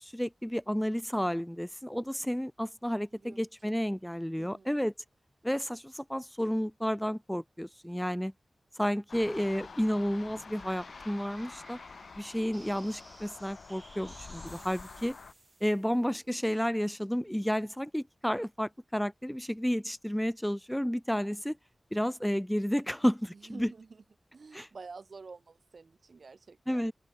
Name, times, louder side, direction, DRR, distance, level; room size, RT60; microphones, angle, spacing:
voice 1, 0.0-4.9 5.4-8.3 8.7-11.8 12.2-15.2 15.6-21.6 21.9-23.7 24.5-24.7 26.7-26.9, equal, 5° left, 1.0 m, -31 dB
voice 2, 3.1-3.7 4.4-4.7 14.4-15.0 23.3-24.0 24.3-26.9, right 4 dB, 65° right, 6.0 m, -50 dB
sound 1, 9.1-15.3, left 5 dB, 80° left, 3.8 m, -48 dB
sound 2, 10.3-16.7, right 2 dB, 35° right, 2.9 m, -56 dB
open air
wide cardioid pair, 80°, 0 cm